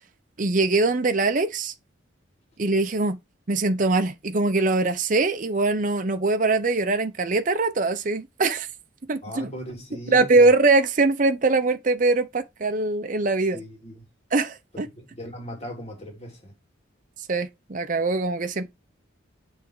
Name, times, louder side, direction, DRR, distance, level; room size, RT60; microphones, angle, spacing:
voice 1, 0.4-1.7 2.6-3.2 3.5-8.7 9.1-9.5 10.1-13.6 14.3-14.9 17.3-18.7, right 3 dB, 40° right, 0.6 m, -22 dB
voice 2, 9.2-10.4 13.5-14.1 15.0-16.5, equal, 30° left, 2.7 m, -38 dB
7.5 x 3.4 x 4.7 m
head